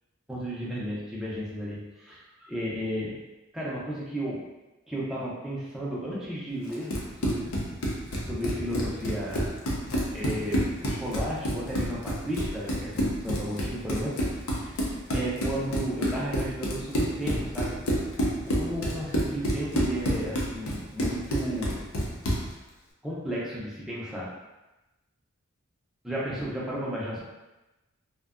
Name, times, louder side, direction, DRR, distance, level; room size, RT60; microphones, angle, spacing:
voice 1, 0.3-3.2 3.5-4.5 4.9-7.5 8.2-9.5 10.1-14.5 15.1-17.8 18.4-21.8 23.0-24.3 26.0-27.2, equal, ahead, -7 dB, 0.4 m, -33 dB
Run, 6.7-22.5, equal, 90° left, 0.5 m, -29 dB
2.6 x 2.1 x 2.4 m, 1.0 s
head